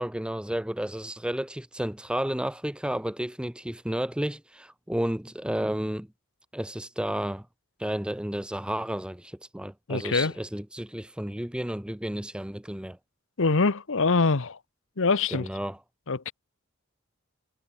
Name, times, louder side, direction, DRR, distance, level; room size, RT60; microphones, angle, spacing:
voice 1, 0.0-6.1 6.5-7.5 7.8-13.0 15.3-15.8 16.3-16.4, right 1 dB, 5° right, 0.8 m, -32 dB
voice 2, 9.9-10.3 13.4-14.6 15.0-15.5 16.1-16.3, left 4 dB, 65° left, 1.0 m, -24 dB
head